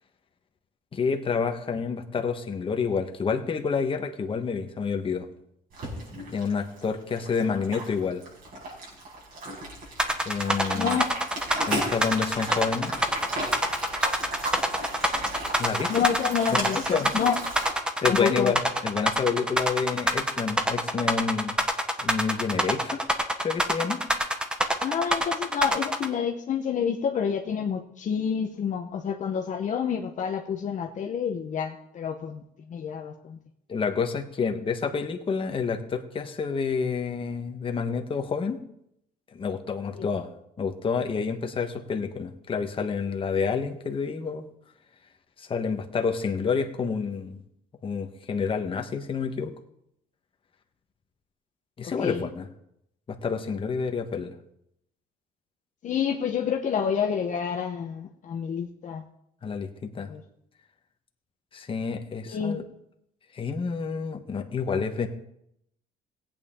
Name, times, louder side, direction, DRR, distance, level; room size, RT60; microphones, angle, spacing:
voice 1, 0.9-5.3 6.3-8.2 10.2-11.0 11.7-12.9 15.6-16.0 16.5-17.4 18.0-21.6 22.0-23.0 23.4-24.0 33.7-38.6 39.3-40.3 40.6-44.5 45.4-47.4 47.8-49.5 51.8-52.5 53.1-54.3 59.4-60.1 61.5-62.6 63.3-65.1, left 5 dB, 30° left, 4 dB, 1.3 m, -29 dB
sound 1, 5.7-17.7, right 1 dB, 55° right, 5.7 m, -35 dB
sound 2, 10.0-26.1, equal, 5° right, 1.1 m, -26 dB
voice 2, 10.7-11.1 15.9-17.4 18.0-18.5 24.8-32.4 32.7-33.4 39.9-40.1 51.8-52.2 55.8-59.0 60.1-60.2 62.3-62.6, left 7 dB, 45° left, 2 dB, 1.0 m, -28 dB
17.5 x 8.9 x 3.7 m, 0.78 s
cardioid pair, 110°, 17 cm